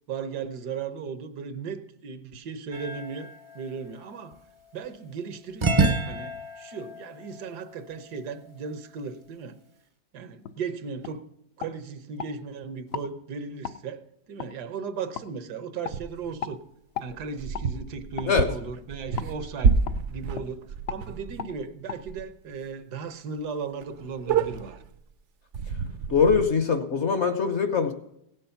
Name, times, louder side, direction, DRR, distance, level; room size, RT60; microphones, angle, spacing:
voice 1, 0.1-4.4 4.7-9.6 10.1-11.2 11.6-16.6 17.0-19.7 20.1-24.8, right 5 dB, 75° right, 1.5 m, -36 dB
sound 1, 2.7-4.9 5.6-8.5, right 3 dB, 35° right, 0.4 m, -30 dB
sound 2, 10.4-10.6 11.0-11.2 11.6-12.3 12.9-13.1 13.6-13.8 14.4-14.5 15.1-15.3 15.8-16.0 16.4-16.6 16.9-17.1 17.5-17.7 18.2-18.3 19.2-19.3 19.9-20.0 20.3-20.5 20.9-21.0 21.4-21.5 21.9-22.0, left 7 dB, 70° left, 0.6 m, -35 dB
sound 3, 15.9-16.4 17.1-21.6 22.0-22.2 22.5-22.6 23.1-23.2 23.4-23.5 23.8-24.9 25.5-26.4, right 5 dB, 60° right, 0.8 m, -28 dB
voice 2, 26.1-27.9, left 5 dB, 50° left, 1.0 m, -22 dB
17.0 x 6.9 x 5.7 m
omnidirectional pair, 1.8 m